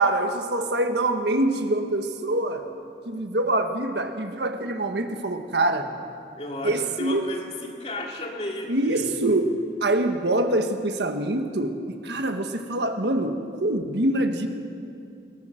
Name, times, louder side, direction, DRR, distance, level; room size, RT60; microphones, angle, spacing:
voice 1, 0.0-2.6 3.0-5.9 6.6-7.2 8.7-9.5 9.8-11.8 12.0-13.4 13.6-14.5, right 2 dB, 75° right, 6 dB, 1.5 m, -24 dB
voice 2, 6.4-9.2, left 1 dB, 35° left, 1 dB, 2.3 m, -34 dB
21.5 x 18.5 x 6.5 m, 2.5 s
head